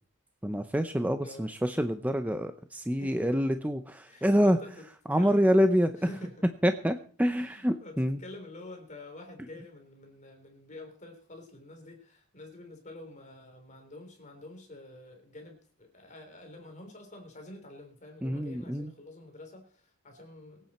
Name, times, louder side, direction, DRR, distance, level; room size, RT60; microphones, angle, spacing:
voice 1, 0.4-4.6 5.1-5.9 6.6-8.2 18.2-18.9, equal, 5° right, 8 dB, 0.7 m, -26 dB
voice 2, 1.2-1.5 3.0-3.6 4.1-4.8 5.1-5.5 6.0-6.4 7.4-20.7, left 2 dB, 35° left, 3 dB, 3.5 m, -48 dB
23.5 x 9.0 x 4.3 m, 0.42 s
head